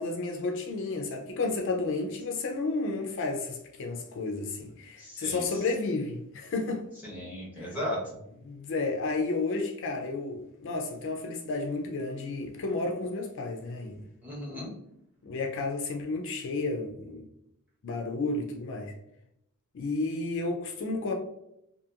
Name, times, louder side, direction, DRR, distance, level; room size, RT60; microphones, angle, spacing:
voice 1, 0.0-6.8 7.6-7.8 8.4-14.0 15.2-17.3 17.8-18.9 19.7-21.1, left 3 dB, 55° left, 0.4 m, -32 dB
voice 2, 5.0-5.4 7.0-8.2 14.2-14.7, left 1 dB, 10° right, 1.0 m, -36 dB
2.8 x 2.6 x 2.3 m
head